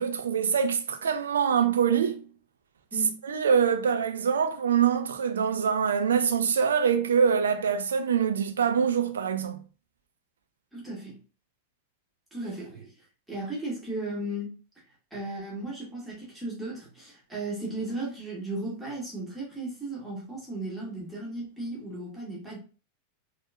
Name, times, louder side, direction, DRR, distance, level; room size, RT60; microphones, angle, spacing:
voice 1, 0.0-2.2 3.2-9.6, right 7 dB, 65° right, 0.4 m, -24 dB
voice 2, 10.7-11.2 12.3-12.9 13.3-14.5 15.1-22.6, right 2 dB, 5° right, 1.3 m, -35 dB
4.3 x 2.4 x 2.3 m
figure-of-eight pair, 90°, 0 cm